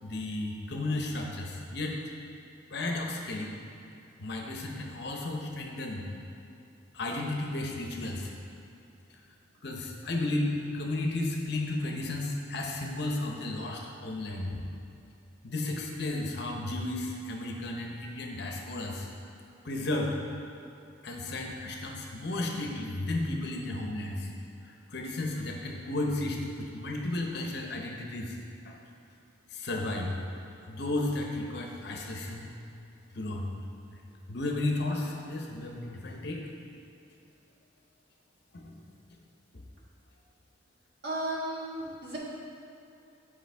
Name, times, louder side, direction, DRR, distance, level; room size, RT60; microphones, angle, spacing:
voice 1, 0.0-2.0 2.7-3.6 4.2-6.0 6.9-8.3 9.6-14.6 15.4-19.1 19.6-20.2 21.0-24.3 24.6-28.4 28.6-28.8 29.5-30.1 30.7-32.5 33.1-33.5 33.9-34.0 34.3-36.4 38.5-38.7, left 2 dB, 55° left, 1 dB, 0.8 m, -33 dB
voice 2, 41.0-42.2, right 1 dB, 55° right, -6 dB, 1.7 m, -34 dB
10.0 x 5.0 x 3.4 m, 2.7 s
head